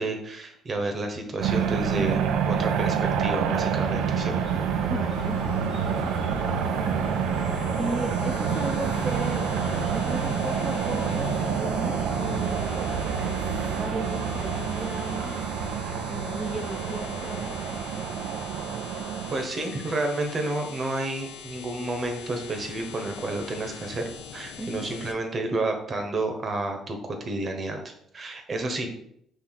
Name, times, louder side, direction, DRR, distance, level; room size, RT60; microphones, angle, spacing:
voice 1, 0.0-4.3 19.3-27.0 27.2-27.8 28.1-28.9, right 2 dB, 45° right, 4 dB, 1.0 m, -30 dB
sound 1, 1.4-19.4, right 7 dB, 75° right, 0.4 m, -27 dB
sound 2, 3.8-12.4, left 2 dB, 60° left, 1.0 m, -38 dB
voice 2, 4.9-5.4 6.0-7.5 7.8-9.5 9.9-12.9 13.7-15.4 16.1-18.1 24.6-24.9, right 2 dB, 20° right, 0 dB, 0.6 m, -36 dB
sound 3, 5.1-25.1, left 6 dB, 80° left, 0.5 m, -42 dB
4.5 x 2.7 x 3.9 m, 0.72 s
supercardioid pair, 65°, 0 cm